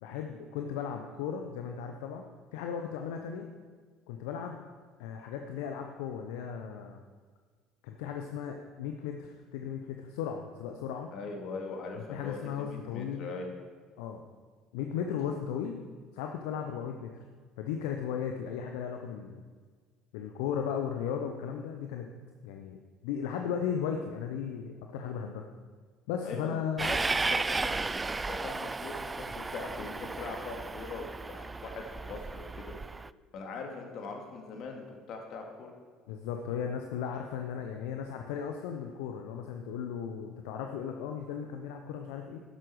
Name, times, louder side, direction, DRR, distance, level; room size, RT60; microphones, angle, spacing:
voice 1, 0.0-2.2 2.5-3.5 4.1-4.6 5.0-7.0 7.8-11.1 12.0-13.3 14.0-14.2 14.7-15.8 16.1-17.1 17.6-19.4 20.1-22.1 22.4-22.8 23.0-25.4 26.1-26.8 36.1-42.4, left 7 dB, 70° left, 4 dB, 0.8 m, -36 dB
voice 2, 11.1-13.5 26.2-32.7 33.3-35.7, left 4 dB, 55° left, 2 dB, 2.4 m, -41 dB
Train, 26.8-33.1, right 3 dB, 20° right, 0.3 m, -34 dB
12.0 x 10.0 x 4.9 m, 1.5 s
hypercardioid pair, 60°, 0 cm